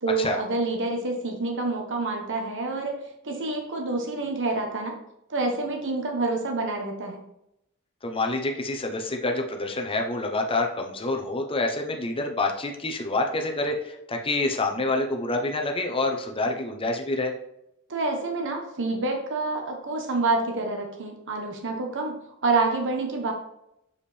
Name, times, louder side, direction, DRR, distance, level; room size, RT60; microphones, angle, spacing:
voice 1, 0.0-3.0 3.2-5.0 5.3-7.2 17.9-22.2 22.4-23.3, right 3 dB, 55° right, 2 dB, 1.3 m, -27 dB
voice 2, 8.0-17.3, left 2 dB, 25° left, 2 dB, 0.9 m, -27 dB
7.1 x 4.8 x 3.4 m, 0.81 s
head